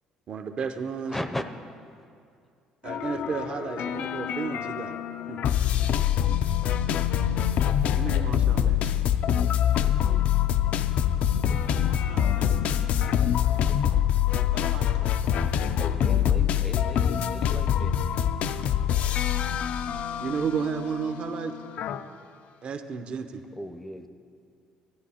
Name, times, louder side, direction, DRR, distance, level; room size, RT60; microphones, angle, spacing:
voice 1, 0.3-1.2 2.8-5.0 5.3-5.4 7.9-8.8 20.2-21.5 22.6-23.4, right 6 dB, 50° right, 8 dB, 0.7 m, -32 dB
voice 2, 1.1-1.4 15.8-18.0 23.6-24.1, left 1 dB, 10° left, 8 dB, 0.5 m, -37 dB
sound 1, 2.9-22.0, left 10 dB, 65° left, 0.4 m, -25 dB
voice 3, 11.6-13.5 14.4-17.3, right 5 dB, 80° right, 3 dB, 1.1 m, -48 dB
12.0 x 9.7 x 4.3 m, 2.4 s
cardioid pair, 95°, 2 cm